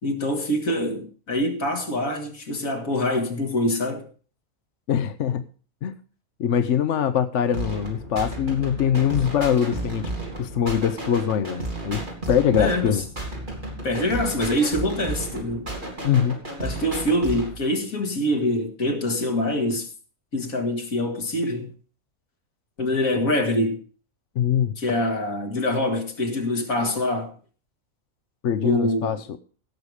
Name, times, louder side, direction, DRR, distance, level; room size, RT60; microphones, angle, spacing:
voice 1, 0.0-4.1 12.6-13.0 13.8-15.7 16.6-19.9 20.3-21.7 22.8-23.8 24.8-27.3 28.6-29.2, left 1 dB, 85° left, 2.5 m, -25 dB
voice 2, 4.9-5.4 5.8-5.9 6.4-10.1 10.4-13.0 16.0-16.4 24.4-24.7 28.4-29.4, left 8 dB, 65° left, 1.0 m, -23 dB
sound 1, 7.5-17.5, right 2 dB, 35° right, 3.5 m, -33 dB
17.0 x 6.9 x 4.8 m
omnidirectional pair, 1.4 m